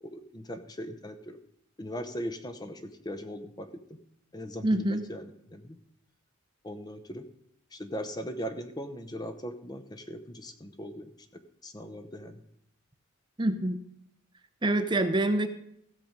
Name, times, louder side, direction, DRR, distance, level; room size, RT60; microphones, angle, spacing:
voice 1, 0.0-1.4 1.8-4.0 4.3-5.8 6.6-7.3 7.7-12.4, equal, 20° left, 8 dB, 0.7 m, -39 dB
voice 2, 4.6-5.0 13.4-13.8 14.6-15.5, right 1 dB, 25° right, 8 dB, 0.7 m, -26 dB
15.5 x 6.9 x 5.1 m, 0.74 s
head